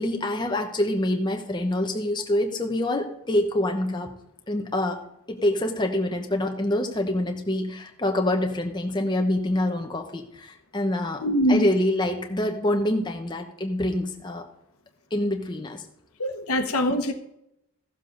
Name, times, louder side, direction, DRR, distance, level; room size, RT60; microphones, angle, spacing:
voice 1, 0.0-4.1 4.5-14.4 15.1-15.8, left 1 dB, 20° left, 3 dB, 1.0 m, -26 dB
voice 2, 11.2-11.7 16.2-17.1, equal, 80° left, 6 dB, 1.2 m, -23 dB
15.5 x 7.3 x 3.9 m, 0.81 s
head